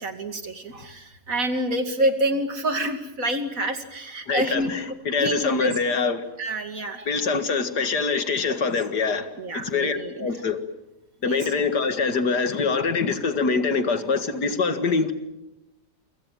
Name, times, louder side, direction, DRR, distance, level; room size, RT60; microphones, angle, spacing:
voice 1, 0.0-4.7 5.2-5.7 6.4-7.1 8.5-8.6 9.4-10.3 11.3-11.5, right 1 dB, 55° right, 7 dB, 3.0 m, -27 dB
voice 2, 4.3-6.2 7.1-9.3 9.5-10.6 11.2-15.1, left 4 dB, 85° left, 9 dB, 2.5 m, -24 dB
28.0 x 25.5 x 7.6 m, 0.92 s
omnidirectional pair, 1.7 m